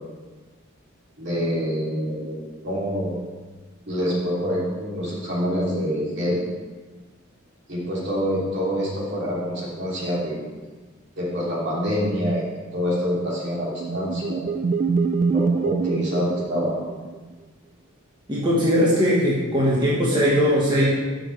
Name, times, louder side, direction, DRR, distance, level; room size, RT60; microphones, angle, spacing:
voice 1, 1.2-3.2 3.8-6.4 7.7-10.6 11.2-12.5 12.7-14.4 15.3-16.8, equal, 60° right, -6 dB, 3.1 m, -26 dB
sound 1, 13.3-17.3, right 5 dB, 40° right, 0.3 m, -25 dB
voice 2, 18.3-20.9, equal, 20° right, -7 dB, 1.5 m, -20 dB
13.0 x 6.4 x 3.3 m, 1.3 s
head